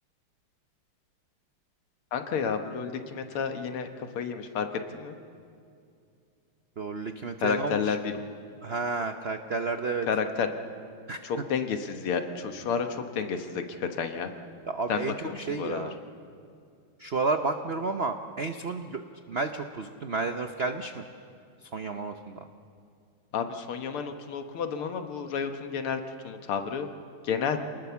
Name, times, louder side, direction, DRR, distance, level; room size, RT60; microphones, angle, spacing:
voice 1, 2.1-5.2 7.4-8.2 10.0-10.5 11.2-14.3 14.9-15.9 23.3-26.9 27.2-27.6, left 6 dB, 90° left, 6 dB, 2.2 m, -31 dB
voice 2, 6.8-8.0 8.6-10.1 11.1-11.2 14.7-16.0 17.0-19.0 19.3-21.1 21.7-22.5, right 4 dB, 85° right, 7 dB, 0.5 m, -31 dB
28.0 x 19.5 x 7.0 m, 2.4 s
omnidirectional pair, 2.3 m